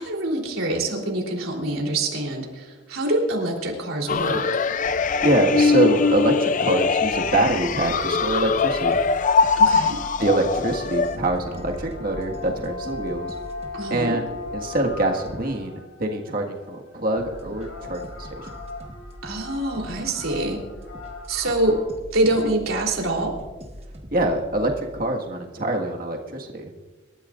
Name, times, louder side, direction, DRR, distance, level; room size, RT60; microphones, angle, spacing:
voice 1, 0.0-4.4 9.6-10.0 13.7-14.2 19.2-20.6 21.3-21.8 22.1-23.4, right 1 dB, 80° right, 0 dB, 3.5 m, -25 dB
sound 1, 4.1-11.2, left 5 dB, 40° left, 0.4 m, -22 dB
sound 2, 4.6-21.8, left 3 dB, 75° left, 3.7 m, -39 dB
voice 2, 4.9-9.0 10.2-13.4 13.9-14.3 14.5-18.5 24.1-26.7, right 1 dB, 45° right, 1 dB, 1.8 m, -24 dB
sound 3, 7.1-13.8 17.2-25.0, equal, 30° right, 1.4 m, -42 dB
27.0 x 13.5 x 2.6 m, 1.3 s
head